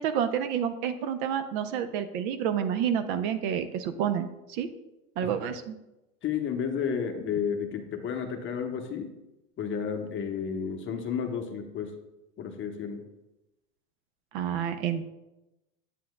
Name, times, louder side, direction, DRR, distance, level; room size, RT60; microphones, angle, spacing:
voice 1, 0.0-4.7 5.2-5.8 14.3-15.1, right 8 dB, 50° right, 10 dB, 0.7 m, -29 dB
voice 2, 6.2-9.1 9.6-11.9 12.4-13.0, left 7 dB, 30° left, 4 dB, 0.9 m, -32 dB
8.3 x 7.5 x 2.3 m, 0.94 s
hypercardioid pair, 115°, 42 cm